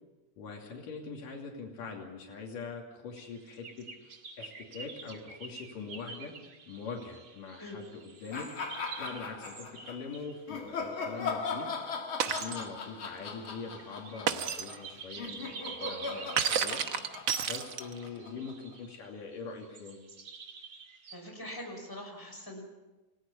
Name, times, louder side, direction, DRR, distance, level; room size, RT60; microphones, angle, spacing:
voice 1, 0.4-6.3 6.7-8.5 9.0-11.7 12.3-16.8 17.4-20.0, left 5 dB, 85° left, 0 dB, 4.3 m, -43 dB
sound 1, 3.2-11.9 12.6-21.2, right 5 dB, 45° right, 2.5 m, -49 dB
sound 2, 8.3-10.0 10.5-18.7, left 4 dB, 40° left, 2.9 m, -39 dB
Shatter, 12.2-12.6 14.3-14.8 16.4-18.1, right 8 dB, 70° right, 1.1 m, -31 dB
voice 2, 21.1-22.6, left 1 dB, 5° left, 2 dB, 5.2 m, -43 dB
29.0 x 18.0 x 7.0 m, 1.1 s
omnidirectional pair, 3.7 m